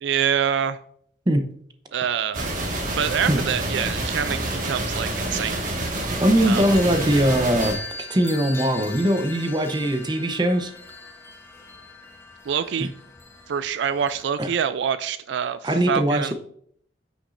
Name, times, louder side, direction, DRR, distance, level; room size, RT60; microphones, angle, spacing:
voice 1, 0.0-0.8 1.9-2.5 3.0-5.6 6.4-6.6 12.5-12.9 13.5-16.3, right 8 dB, 65° right, 13 dB, 0.3 m, -25 dB
sound 1, 2.3-7.7, right 1 dB, 45° right, 1.6 m, -28 dB
voice 2, 6.2-7.8 8.1-10.7 14.4-14.5 15.6-16.3, right 1 dB, 20° right, 7 dB, 0.7 m, -21 dB
sound 2, 6.5-14.2, left 2 dB, 15° left, 1.0 m, -39 dB
9.6 x 6.0 x 2.5 m, 0.64 s
head